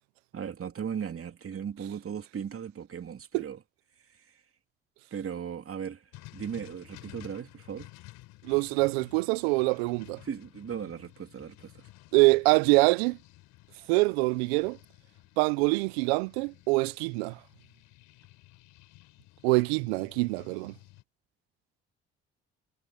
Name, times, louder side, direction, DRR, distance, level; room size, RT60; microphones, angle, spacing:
voice 1, 0.3-3.6 4.1-4.3 5.1-6.0 6.3-7.9 10.2-11.9, right 7 dB, 45° right, 2.8 m, -37 dB
sound 1, 6.1-21.0, left 19 dB, 75° left, 6.1 m, -53 dB
voice 2, 8.4-10.2 12.1-13.2 13.9-14.8 15.4-17.4 19.4-20.7, right 26 dB, 80° right, 0.9 m, -25 dB
hypercardioid pair, 45°, 31 cm